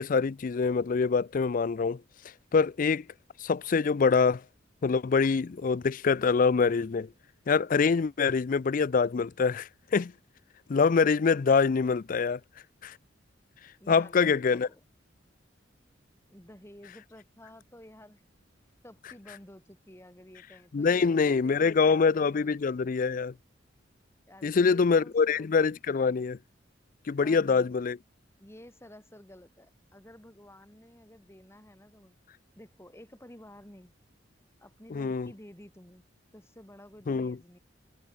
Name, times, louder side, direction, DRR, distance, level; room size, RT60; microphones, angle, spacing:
voice 1, 0.0-2.0 2.5-3.0 3.4-4.4 4.8-7.1 7.5-10.1 10.7-12.4 12.8-12.9 13.9-14.7 20.7-23.3 24.4-26.4 27.1-28.0 34.9-35.3 37.1-37.4, left 5 dB, 45° left, 0.4 m, -25 dB
voice 2, 13.8-14.8 16.3-18.2 18.8-22.8 24.3-25.5 27.2-27.7 28.4-32.2 32.5-33.9 34.6-36.0 36.3-37.6, left 1 dB, 15° left, 4.8 m, -52 dB
head